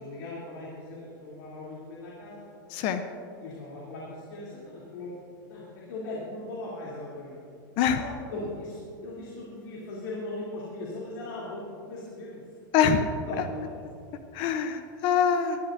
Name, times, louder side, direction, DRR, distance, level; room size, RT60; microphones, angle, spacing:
voice 1, 0.0-2.5 3.4-5.1 5.5-7.4 7.9-12.4 12.8-12.9 13.3-13.4 13.7-13.8, left 2 dB, 75° left, -6 dB, 3.1 m, -39 dB
voice 2, 2.7-3.0 7.8-8.0 12.7-13.0 14.3-15.6, left 7 dB, 50° left, 9 dB, 0.7 m, -24 dB
18.5 x 13.0 x 2.6 m, 2.6 s
supercardioid pair, 125°, 11 cm